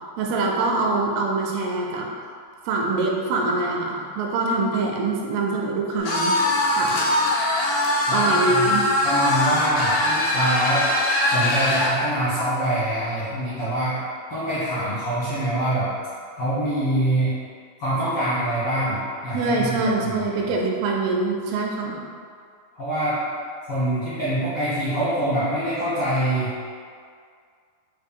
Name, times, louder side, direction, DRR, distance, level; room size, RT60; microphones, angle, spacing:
voice 1, 0.2-2.1 2.7-6.4 6.7-7.0 8.1-8.9 19.3-22.0, right 3 dB, 80° right, -1 dB, 2.4 m, -24 dB
sound 1, 6.0-12.0, left 1 dB, 90° left, 2.8 m, -22 dB
voice 2, 8.1-10.9 11.2-14.0 14.3-15.9 16.3-17.3 17.8-20.4 22.7-23.2 23.7-26.5, right 1 dB, 70° left, -14 dB, 1.3 m, -25 dB
6.4 x 2.2 x 3.6 m, 2.2 s
omnidirectional pair, 4.6 m